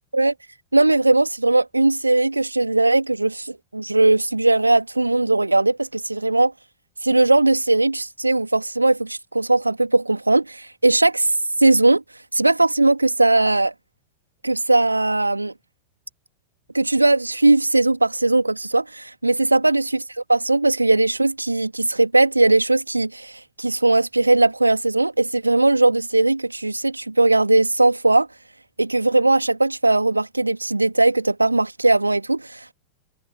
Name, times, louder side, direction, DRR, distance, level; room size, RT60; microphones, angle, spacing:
voice 1, 0.7-6.5 7.0-12.0 12.3-13.7 14.4-15.5 16.7-20.0 20.3-28.3 28.8-32.7, right 2 dB, 85° right, 2.7 m, -19 dB
figure-of-eight pair, 90°, 0 cm